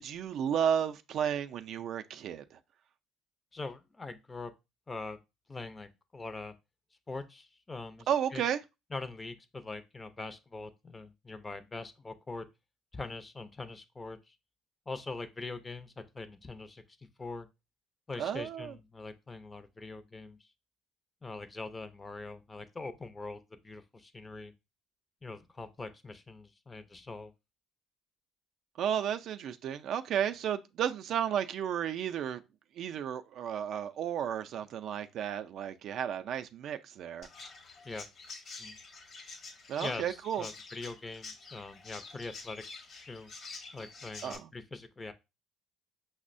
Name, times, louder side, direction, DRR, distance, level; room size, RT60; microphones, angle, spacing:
voice 1, 0.0-2.6 8.1-8.6 18.2-18.8 28.8-32.4 32.8-37.3 39.7-40.5 44.2-44.5, right 9 dB, 60° right, 0.3 m, -33 dB
voice 2, 3.5-4.5 4.9-5.2 5.5-6.5 7.1-8.4 8.9-12.5 12.9-14.3 14.9-16.8 17.2-17.5 18.1-20.4 21.2-24.5 25.2-27.3 37.8-38.1 38.6-38.8 39.8-42.6 43.1-43.3 43.7-45.1, left 3 dB, 20° left, 0.4 m, -43 dB
Chirp tweet, 37.2-44.4, left 3 dB, 45° left, 0.8 m, -47 dB
5.2 x 2.0 x 2.5 m
supercardioid pair, 90°, 0 cm